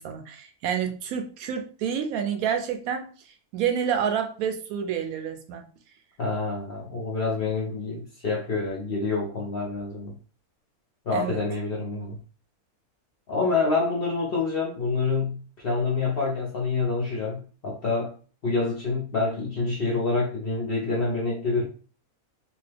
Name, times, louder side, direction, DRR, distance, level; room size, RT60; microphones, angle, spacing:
voice 1, 0.0-3.1 3.5-5.6 11.1-11.4, right 8 dB, 75° right, 5 dB, 1.0 m, -28 dB
voice 2, 6.2-10.1 11.1-12.2 13.3-18.1 18.4-21.6, left 3 dB, 55° left, -3 dB, 0.7 m, -27 dB
2.9 x 2.2 x 3.2 m, 0.38 s
omnidirectional pair, 1.6 m